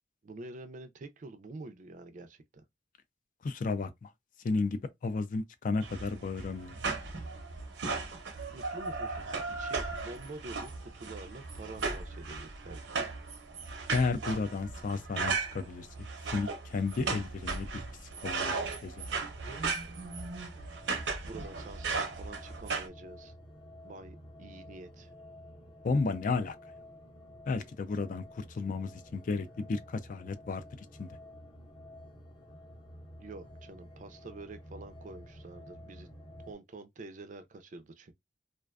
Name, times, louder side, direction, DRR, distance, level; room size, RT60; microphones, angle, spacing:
voice 1, 0.2-2.6 8.5-13.1 21.2-23.3 23.8-25.1 33.2-36.1 36.5-38.1, right 2 dB, 45° right, 0.4 m, -47 dB
voice 2, 3.4-4.1 4.4-6.8 13.9-15.9 16.3-17.7 18.2-18.5 18.8-19.0 25.8-26.6 27.5-30.6 31.0-31.2, left 4 dB, 45° left, 0.3 m, -33 dB
sound 1, 5.8-22.9, right 4 dB, 85° right, 0.7 m, -36 dB
sound 2, 19.1-36.5, left 1 dB, 30° left, 0.7 m, -52 dB
2.4 x 2.2 x 2.3 m
head